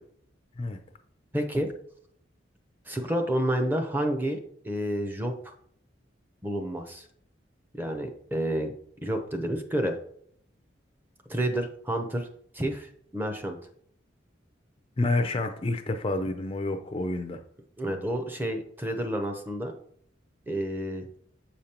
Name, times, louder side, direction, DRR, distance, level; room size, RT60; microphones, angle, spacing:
voice 1, 1.3-1.7 2.9-5.3 6.4-7.0 7.7-8.7 9.0-10.0 11.3-12.3 12.5-13.6 17.8-19.7 20.5-21.1, right 1 dB, 10° right, 5 dB, 0.7 m, -29 dB
voice 2, 15.0-17.4, left 2 dB, 30° left, 6 dB, 0.4 m, -28 dB
7.3 x 5.0 x 2.9 m, 0.64 s
head